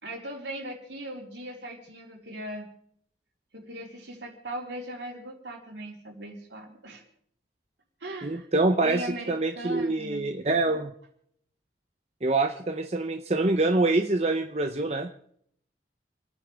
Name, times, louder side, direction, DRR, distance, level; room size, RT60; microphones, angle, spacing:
voice 1, 0.0-2.7 3.5-7.0 8.0-8.5 8.8-10.3, right 1 dB, 75° right, -1 dB, 4.0 m, -39 dB
voice 2, 8.2-9.0 9.3-10.9 12.2-15.1, right 2 dB, 35° right, 5 dB, 0.8 m, -25 dB
29.5 x 10.0 x 3.5 m, 0.66 s
head